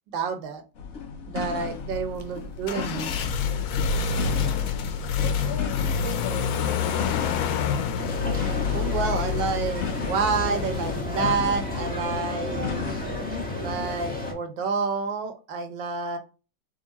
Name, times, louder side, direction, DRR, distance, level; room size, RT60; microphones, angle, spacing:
voice 1, 0.1-0.6 1.3-3.1 8.4-12.9 13.6-16.2, right 5 dB, 75° right, 6 dB, 1.5 m, -29 dB
sound 1, 0.8-14.0, left 4 dB, 50° left, 0.9 m, -36 dB
voice 2, 1.6-1.9 4.4-7.2, left 7 dB, 65° left, 2 dB, 1.2 m, -41 dB
sound 2, 1.8-11.0, left 6 dB, 90° left, 1.4 m, -27 dB
sound 3, 8.0-14.3, left 2 dB, 5° left, 1.3 m, -32 dB
3.8 x 3.2 x 4.1 m, 0.32 s
omnidirectional pair, 2.0 m